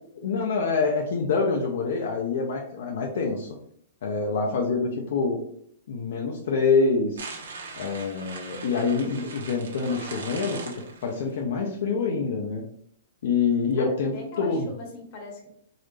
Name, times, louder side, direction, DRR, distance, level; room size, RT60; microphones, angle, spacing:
voice 1, 0.2-3.5 4.0-5.4 5.9-7.3 7.8-10.6 11.0-12.6 13.2-14.1 14.4-14.7, left 4 dB, 60° left, 1 dB, 0.7 m, -26 dB
sound 1, 7.2-11.3, right 4 dB, 85° right, 1.1 m, -40 dB
voice 2, 13.8-15.5, left 1 dB, 30° left, 1 dB, 1.0 m, -41 dB
3.9 x 2.6 x 3.2 m, 0.65 s
hypercardioid pair, 170°, 0 cm